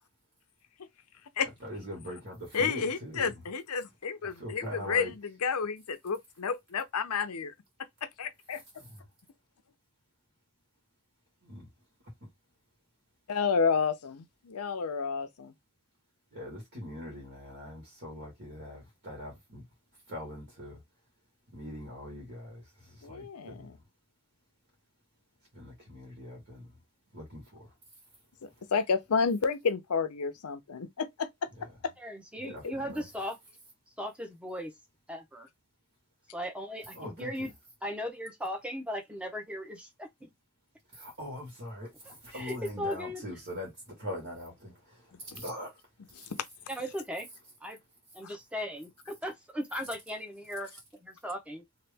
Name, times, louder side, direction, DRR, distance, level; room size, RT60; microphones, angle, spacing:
voice 1, 1.6-3.4 4.2-5.1 11.4-11.7 12.2-12.3 16.3-19.7 20.1-20.8 21.5-23.8 25.5-26.7 27.1-27.7 32.5-33.0 36.9-37.5 40.9-45.8, left 1 dB, 55° right, 1.5 m, -42 dB
voice 2, 2.5-7.5 8.2-8.6 13.3-15.5 23.0-23.8 28.4-31.5 31.8-31.9 32.4-32.7 46.2-46.3 48.2-48.4, left 5 dB, 85° left, 0.6 m, -31 dB
voice 3, 32.0-33.4 34.0-34.7 35.1-35.5 36.3-37.5 37.8-40.3 42.3-43.2 46.7-47.3 47.6-47.8 48.1-50.7 51.0-51.6, equal, 5° right, 0.8 m, -37 dB
2.9 x 2.4 x 3.4 m
head